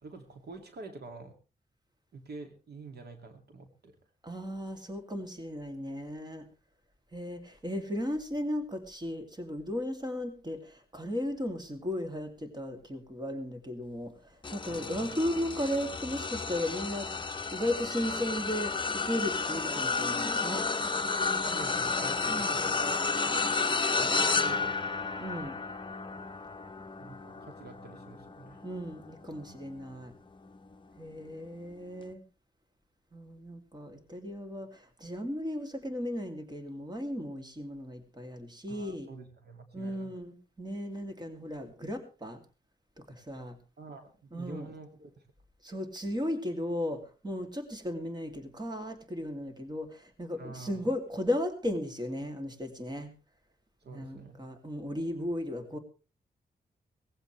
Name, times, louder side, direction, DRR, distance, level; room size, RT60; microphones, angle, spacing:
voice 1, 0.0-1.3 2.1-4.0 14.7-15.1 21.4-22.9 24.0-24.8 27.0-28.7 38.7-40.1 43.8-45.1 50.4-50.9 53.8-54.4, right 3 dB, 75° right, 6 dB, 2.5 m, -47 dB
voice 2, 4.2-6.5 7.1-20.7 22.3-22.5 25.2-25.6 28.6-30.1 31.0-32.2 33.1-39.1 39.7-42.4 43.0-43.6 44.3-44.7 45.6-53.1 53.8-55.8, left 1 dB, 25° right, 6 dB, 2.8 m, -36 dB
sound 1, 14.4-29.9 30.5-30.7 32.0-32.1, left 4 dB, 30° left, 0.9 m, -32 dB
19.0 x 15.5 x 3.3 m, 0.33 s
wide cardioid pair, 95°, 17 cm